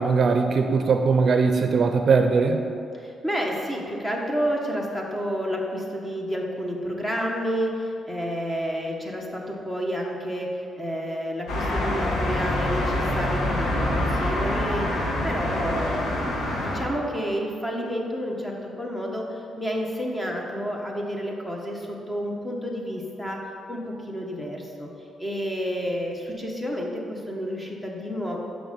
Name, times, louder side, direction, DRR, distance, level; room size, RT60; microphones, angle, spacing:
voice 1, 0.0-2.6, right 4 dB, 50° right, 5 dB, 0.5 m, -20 dB
voice 2, 2.9-14.9 15.2-16.3 16.5-23.4 23.7-24.9 25.2-28.4, equal, 10° left, -1 dB, 1.3 m, -30 dB
sound 1, 11.5-16.9, left 1 dB, 90° left, 1.6 m, -26 dB
6.3 x 6.0 x 6.8 m, 2.6 s
cardioid pair, 115°, 0 cm